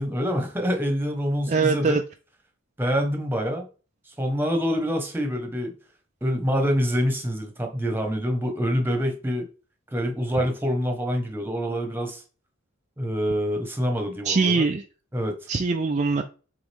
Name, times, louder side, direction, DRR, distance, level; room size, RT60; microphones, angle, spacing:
voice 1, 0.0-2.0 2.8-3.6 4.1-5.7 6.2-9.5 9.9-12.2 13.0-14.6 15.1-15.4, equal, 10° right, 1.3 m, -26 dB
voice 2, 1.5-2.0 14.2-14.8 15.5-16.2, right 4 dB, 35° right, 0.5 m, -22 dB
7.2 x 3.9 x 3.6 m
head